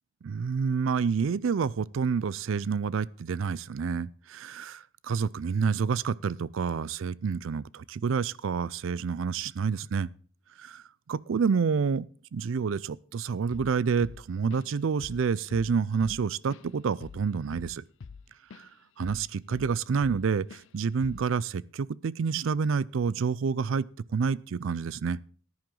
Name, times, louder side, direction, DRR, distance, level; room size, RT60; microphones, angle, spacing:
voice 1, 0.2-10.1 10.6-10.8 11.1-12.1 12.3-17.8 18.6-18.7 19.0-23.9 24.1-25.2, right 5 dB, 75° right, 0.4 m, -28 dB
Drum kit / Drum, 13.5-13.8 14.0-14.8 15.0-15.3 15.5-18.7 19.0-20.2 20.5-20.7 21.0-21.3, left 5 dB, 65° left, 0.4 m, -45 dB
13.5 x 10.5 x 3.8 m
head